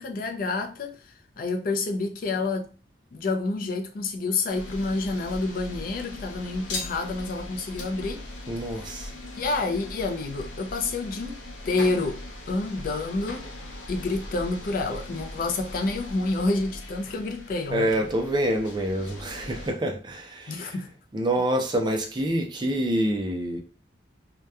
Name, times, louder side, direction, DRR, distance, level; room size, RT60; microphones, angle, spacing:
voice 1, 0.0-2.7 3.1-8.3 8.8-9.1 9.3-11.4 11.7-12.2 12.5-13.5 13.9-17.9 20.5-20.9, left 3 dB, 50° left, 0.3 m, -28 dB
sound 1, 4.5-19.7, left 2 dB, 90° left, 0.6 m, -39 dB
voice 2, 8.5-9.1 17.7-20.7 21.1-23.6, right 1 dB, 25° right, 0.4 m, -26 dB
2.8 x 2.2 x 2.2 m
head